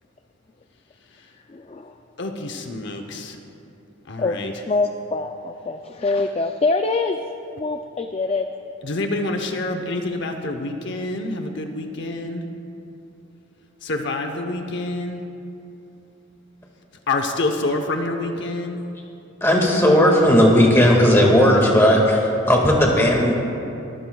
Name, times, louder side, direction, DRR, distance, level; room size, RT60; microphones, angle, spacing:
voice 1, 1.5-1.9 4.2-7.2 7.5-8.5, left 3 dB, 30° left, 6 dB, 0.3 m, -24 dB
voice 2, 2.2-3.4 4.1-4.5 8.8-12.4 13.8-15.2 17.1-18.8, left 2 dB, 55° left, 4 dB, 0.8 m, -27 dB
voice 3, 19.4-23.3, equal, 10° left, -1 dB, 1.8 m, -15 dB
23.0 x 14.0 x 2.3 m, 2.8 s
head